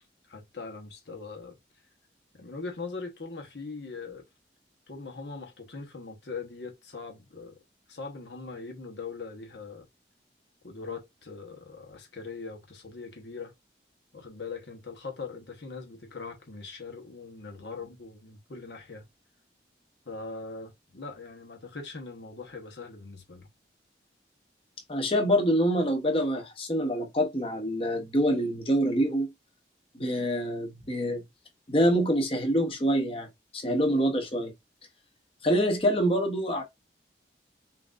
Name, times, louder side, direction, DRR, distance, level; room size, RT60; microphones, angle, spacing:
voice 1, 0.3-1.5 2.3-4.2 4.9-7.5 7.9-9.9 10.6-13.5 14.1-19.1 20.1-23.5, left 4 dB, 75° left, 1.1 m, -41 dB
voice 2, 24.9-29.3 30.0-31.2 31.7-33.3 33.5-34.5 35.4-36.6, equal, 30° left, 0.9 m, -26 dB
5.8 x 2.6 x 2.4 m
head